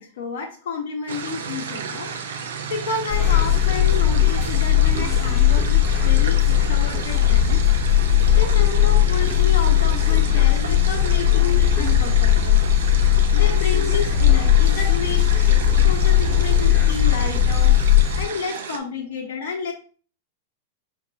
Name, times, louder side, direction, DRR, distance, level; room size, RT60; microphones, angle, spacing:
voice 1, 0.0-2.2 2.7-7.6 8.4-12.6 13.0-15.5 15.8-17.7 18.2-19.7, left 4 dB, 70° left, -1 dB, 0.9 m, -30 dB
sound 1, 1.1-18.8, right 6 dB, 80° right, 0.6 m, -33 dB
sound 2, 3.1-18.2, left 10 dB, 35° left, 1.0 m, -18 dB
4.5 x 2.3 x 4.0 m, 0.42 s
hypercardioid pair, 115°, 0 cm